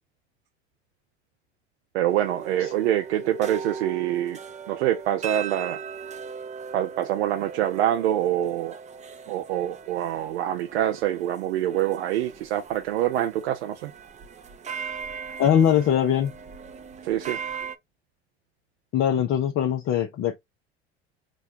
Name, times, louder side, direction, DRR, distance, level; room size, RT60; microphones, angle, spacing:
voice 1, 1.9-4.4 4.7-5.8 6.7-8.8 9.3-13.9 17.0-17.4, right 12 dB, 80° right, 0.5 m, -25 dB
sound 1, 2.1-17.8, right 6 dB, 20° right, 0.6 m, -39 dB
voice 2, 15.4-16.3 18.9-20.4, left 9 dB, 40° left, 0.6 m, -21 dB
4.0 x 2.2 x 2.7 m
hypercardioid pair, 70°, 32 cm